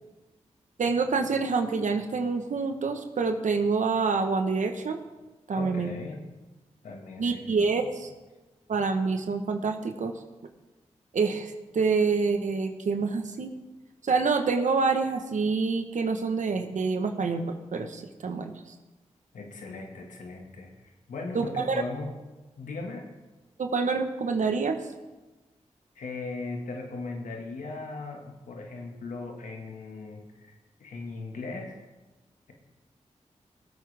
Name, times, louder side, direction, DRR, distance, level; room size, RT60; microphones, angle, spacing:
voice 1, 0.8-5.0 5.5-5.9 7.2-8.1 8.7-10.1 11.1-13.5 14.0-18.5 21.3-21.8 23.6-24.8, right 4 dB, 75° right, 6 dB, 1.3 m, -27 dB
voice 2, 5.5-6.2 6.8-7.7 19.3-22.1 22.6-23.1 26.0-31.8, left 3 dB, 80° left, 2 dB, 1.9 m, -38 dB
19.0 x 8.2 x 3.5 m, 1.2 s
cardioid pair, 45°, 13 cm